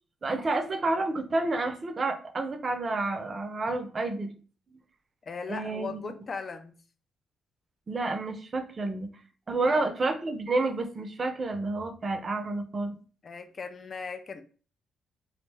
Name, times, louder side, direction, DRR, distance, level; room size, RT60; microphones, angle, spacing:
voice 1, 0.2-4.3 4.7-4.8 5.5-6.0 7.9-9.1 9.5-13.0, right 2 dB, 35° right, 7 dB, 0.5 m, -29 dB
voice 2, 5.2-6.8 9.7-10.0 13.2-14.4, left 5 dB, 40° left, 8 dB, 0.4 m, -38 dB
2.4 x 2.1 x 3.3 m, 0.39 s
cardioid pair, 90°, 0 cm